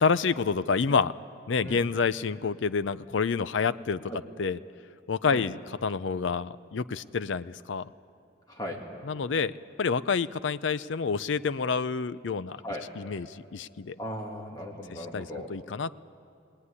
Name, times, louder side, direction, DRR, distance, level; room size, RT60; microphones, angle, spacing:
voice 1, 0.0-1.1 1.5-4.1 4.4-4.6 5.1-7.9 9.1-12.6 13.0-14.0 15.1-15.9, left 5 dB, 70° left, 16 dB, 0.5 m, -28 dB
voice 2, 8.5-8.8 12.6-12.9 14.0-15.5, equal, 20° left, 0 dB, 2.1 m, -37 dB
21.5 x 18.5 x 9.7 m, 2.4 s
head